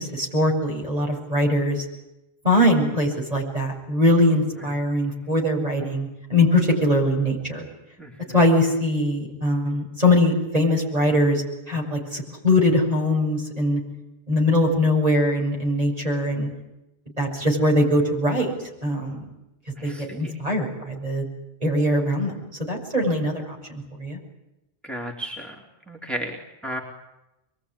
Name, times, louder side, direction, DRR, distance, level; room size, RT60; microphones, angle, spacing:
voice 1, 0.0-1.8 2.4-7.6 8.3-13.8 14.3-16.5 17.2-18.5 18.8-19.2 19.8-21.3 21.6-22.3 22.6-24.2, left 1 dB, 40° right, 0 dB, 7.8 m, -22 dB
voice 2, 19.8-20.3 24.8-25.6 25.9-26.4 26.6-26.8, right 1 dB, ahead, 0 dB, 3.3 m, -33 dB
25.5 x 23.0 x 9.9 m, 0.92 s
omnidirectional pair, 1.0 m